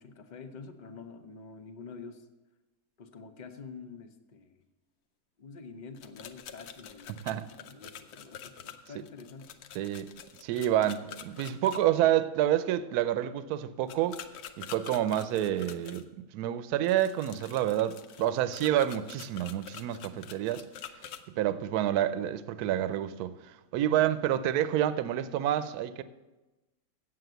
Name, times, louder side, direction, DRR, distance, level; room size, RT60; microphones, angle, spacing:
voice 1, 0.0-2.3 3.0-4.7 5.4-9.6, left 4 dB, 50° left, 0.5 m, -47 dB
sound 1, 5.9-11.8 13.9-16.0 16.8-21.2, left 9 dB, 70° left, 1.2 m, -46 dB
voice 2, 9.8-10.1 10.4-14.2 14.6-20.6 21.4-26.0, right 12 dB, 75° right, 1.1 m, -28 dB
7.8 x 7.7 x 7.9 m
omnidirectional pair, 1.7 m